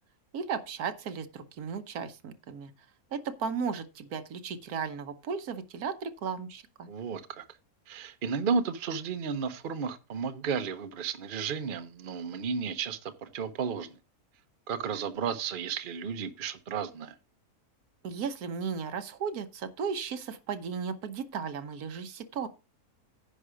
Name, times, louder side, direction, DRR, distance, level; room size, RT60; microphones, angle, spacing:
voice 1, 0.3-2.7 3.1-6.9 18.0-22.5, right 6 dB, 80° right, 1.4 m, -35 dB
voice 2, 6.9-7.4 7.9-14.0 14.7-17.2, right 6 dB, 45° right, 0.9 m, -33 dB
10.0 x 5.5 x 4.9 m
omnidirectional pair, 1.6 m